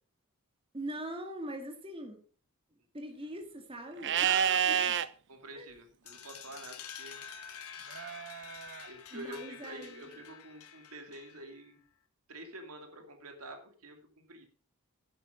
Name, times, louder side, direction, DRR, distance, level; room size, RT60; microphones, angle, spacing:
voice 1, 0.7-2.2 2.9-4.3 4.7-5.0 5.5-5.7 9.1-10.2, right 1 dB, 25° right, 3 dB, 2.2 m, -42 dB
Livestock farm animals working animals, 4.0-5.1 7.9-8.9, right 9 dB, 55° right, 0.7 m, -29 dB
voice 2, 4.2-4.9 5.3-7.2 8.9-11.8 12.3-14.0 14.3-14.4, right 2 dB, 75° right, 5 dB, 2.5 m, -46 dB
sound 1, 6.1-11.6, left 7 dB, 70° left, 1.8 m, -48 dB
9.8 x 9.3 x 5.7 m, 0.40 s
head